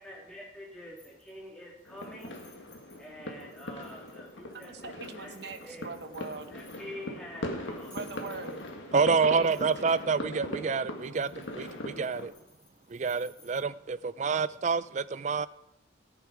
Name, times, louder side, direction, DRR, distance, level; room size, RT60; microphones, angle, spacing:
voice 1, 0.0-2.3 3.0-5.9 6.5-8.0, left 1 dB, 5° left, 3.0 m, -46 dB
sound 1, 1.0-1.5 1.8-7.0 7.6-8.9 9.3-10.0 11.0-13.6, left 3 dB, 20° left, 2.2 m, -60 dB
sound 2, 1.9-12.3, left 1 dB, 70° left, 1.9 m, -40 dB
voice 2, 4.5-6.5 7.9-8.6 9.0-9.9, right 4 dB, 55° right, 0.9 m, -42 dB
voice 3, 8.9-12.3 12.9-15.5, right 5 dB, 35° right, 0.3 m, -28 dB
15.0 x 9.2 x 4.9 m
head